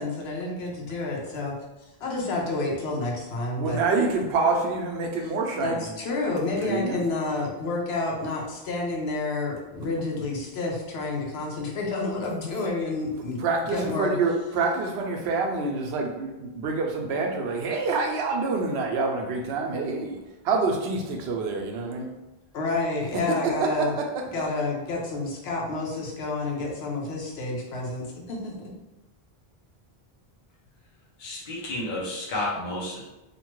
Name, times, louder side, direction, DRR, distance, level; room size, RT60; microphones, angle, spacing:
voice 1, 0.0-1.5 2.0-3.8 5.6-14.1 22.5-24.0 24.3-28.5, left 2 dB, 85° left, -1 dB, 0.9 m, -29 dB
voice 2, 3.6-5.9 6.5-7.0 13.4-20.2 20.4-22.1 23.3-24.1, right 4 dB, 85° right, 2 dB, 0.8 m, -27 dB
voice 3, 31.2-33.0, left 1 dB, 55° left, -5 dB, 0.8 m, -31 dB
2.8 x 2.1 x 3.0 m, 1.0 s
omnidirectional pair, 1.0 m